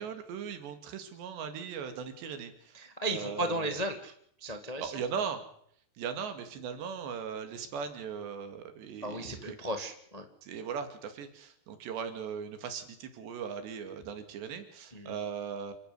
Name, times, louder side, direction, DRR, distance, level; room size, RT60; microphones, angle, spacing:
voice 1, 0.0-3.8 4.8-5.4 6.0-9.6 10.4-15.7, right 6 dB, 80° right, 8 dB, 4.6 m, -39 dB
voice 2, 2.7-4.1 4.4-4.9 9.0-10.2 14.9-15.1, right 1 dB, 30° left, 6 dB, 0.7 m, -35 dB
28.0 x 11.5 x 9.7 m, 0.66 s
omnidirectional pair, 4.9 m